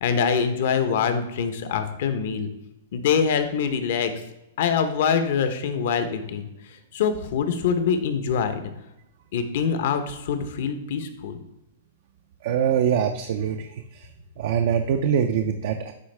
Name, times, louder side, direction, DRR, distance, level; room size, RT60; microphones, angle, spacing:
voice 1, 0.0-2.5 2.9-4.1 4.6-8.6 9.3-11.4, left 6 dB, 60° left, 9 dB, 0.8 m, -24 dB
voice 2, 12.4-14.1 14.4-15.9, right 8 dB, 60° right, 6 dB, 0.5 m, -24 dB
9.3 x 3.5 x 3.3 m, 0.91 s
hypercardioid pair, 155°, 0 cm